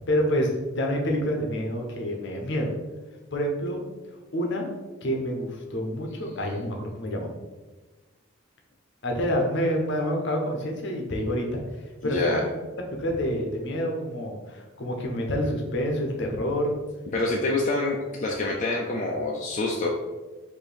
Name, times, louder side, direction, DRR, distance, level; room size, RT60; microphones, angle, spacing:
voice 1, 0.1-2.7 3.3-3.8 4.3-4.7 5.0-7.3 9.0-11.5 12.0-12.4 13.0-16.7, equal, 60° left, 1 dB, 0.7 m, -27 dB
voice 2, 12.0-12.4 17.1-19.9, left 2 dB, 40° left, -2 dB, 0.4 m, -26 dB
4.3 x 2.6 x 3.3 m, 1.2 s
head